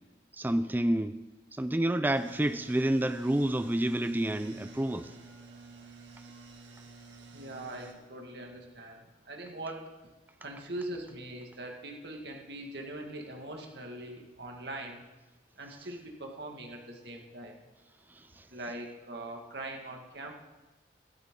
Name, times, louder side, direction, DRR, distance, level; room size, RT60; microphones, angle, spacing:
voice 1, 0.4-1.2 1.5-5.1 18.4-18.5, right 1 dB, 10° right, 12 dB, 0.3 m, -29 dB
sound 1, 2.1-7.9, right 3 dB, 80° right, 2.2 m, -50 dB
voice 2, 7.3-10.1 10.4-15.0 15.6-17.7 18.5-20.3, right 1 dB, 65° right, 1 dB, 1.9 m, -42 dB
16.5 x 12.0 x 3.8 m, 1.1 s
head